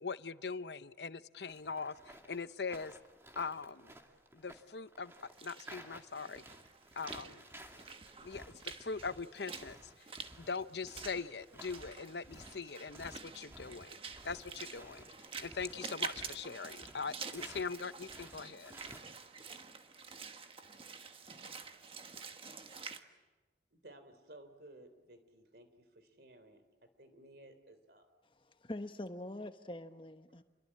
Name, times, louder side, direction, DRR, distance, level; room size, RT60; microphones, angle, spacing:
voice 1, 0.0-3.0 3.4-3.9 4.3-5.1 5.4-6.4 7.0-7.4 8.2-10.1 10.4-15.1 15.4-18.7, left 5 dB, 75° left, 14 dB, 0.8 m, -41 dB
sound 1, 1.5-17.7 18.0-19.0, right 1 dB, 15° right, 2.3 m, -55 dB
Walk footsteps / Splash splatter, 5.1-23.0, right 5 dB, 30° right, 1.4 m, -48 dB
voice 2, 23.7-28.1, right 1 dB, 65° right, 10 dB, 3.3 m, -57 dB
voice 3, 28.4-30.4, left 1 dB, 30° left, 9 dB, 1.2 m, -44 dB
28.5 x 22.5 x 8.7 m, 1.2 s
head